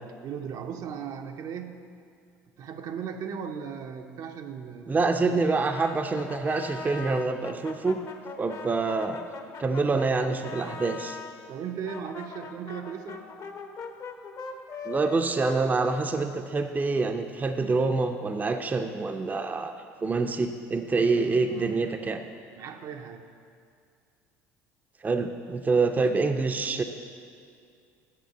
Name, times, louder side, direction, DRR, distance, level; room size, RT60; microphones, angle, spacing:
voice 1, 0.2-1.9 2.6-5.4 11.5-13.2 20.9-21.0 21.5-22.0 22.6-23.2, right 7 dB, 55° right, 5 dB, 0.7 m, -37 dB
voice 2, 4.9-8.0 8.4-9.2 9.6-11.2 14.8-19.7 20.0-22.2 25.0-26.8, right 3 dB, 25° right, 6 dB, 0.5 m, -26 dB
Brass instrument, 5.7-11.3 11.8-16.6, left 5 dB, 50° left, 0.9 m, -41 dB
7.5 x 6.8 x 6.5 m, 2.3 s
hypercardioid pair, 70°, 8 cm